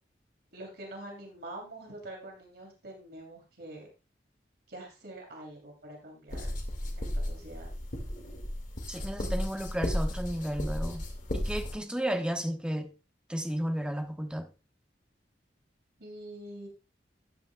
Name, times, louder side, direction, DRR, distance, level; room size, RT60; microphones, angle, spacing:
voice 1, 0.5-3.9 4.7-6.5 7.0-7.7 16.0-16.7, right 1 dB, 60° right, 3.0 m, -45 dB
sound 1, 6.3-11.7, left 1 dB, 45° left, 1.9 m, -34 dB
voice 2, 8.9-11.0 11.3-12.9 13.3-14.5, equal, 5° right, 1.0 m, -33 dB
13.0 x 9.2 x 2.3 m
head